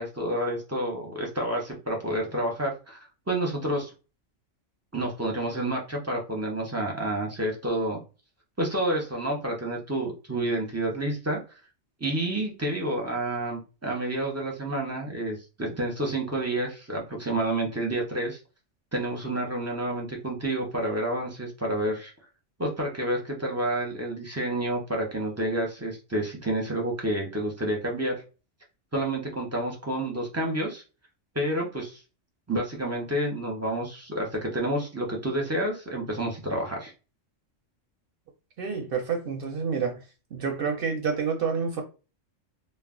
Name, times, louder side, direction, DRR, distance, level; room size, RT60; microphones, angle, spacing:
voice 1, 0.0-3.9 4.9-8.0 8.6-11.4 12.0-18.4 18.9-22.1 22.6-28.2 28.9-30.8 31.3-32.0 32.5-36.9, right 1 dB, 20° right, 0 dB, 0.5 m, -29 dB
voice 2, 38.6-40.0 40.3-41.8, right 5 dB, 60° right, 4 dB, 0.6 m, -28 dB
2.3 x 2.1 x 3.5 m, 0.31 s
omnidirectional pair, 1.3 m